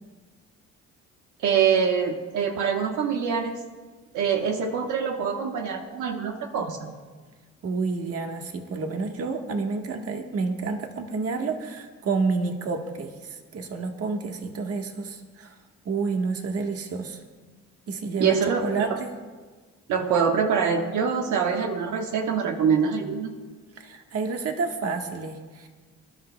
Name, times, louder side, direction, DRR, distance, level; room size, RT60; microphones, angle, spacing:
voice 1, 1.4-3.6 4.1-7.0 18.2-19.0 19.9-23.3, right 6 dB, 80° right, 3 dB, 1.1 m, -24 dB
voice 2, 7.6-15.5 15.8-17.2 17.9-19.2 23.8-25.7, right 4 dB, 55° right, 4 dB, 1.4 m, -29 dB
25.0 x 11.5 x 2.2 m, 1.4 s
cardioid pair, 90°, 30 cm